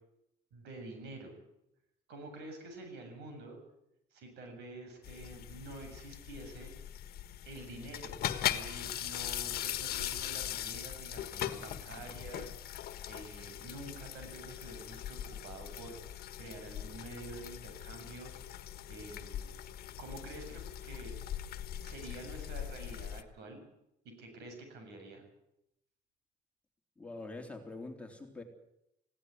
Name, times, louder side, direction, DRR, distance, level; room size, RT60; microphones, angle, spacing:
voice 1, 0.5-1.4 2.1-3.6 4.1-6.8 7.4-8.1 8.4-12.5 13.1-16.0 16.4-18.3 18.9-19.5 20.0-21.1 21.8-23.6 24.0-25.2, right 2 dB, 80° right, 5 dB, 7.5 m, -48 dB
sound 1, 5.0-23.2, left 11 dB, 65° left, 1.5 m, -40 dB
voice 2, 27.0-28.4, left 2 dB, 5° left, 2 dB, 3.6 m, -44 dB
19.5 x 16.5 x 9.7 m, 0.82 s
cardioid pair, 110°, 17 cm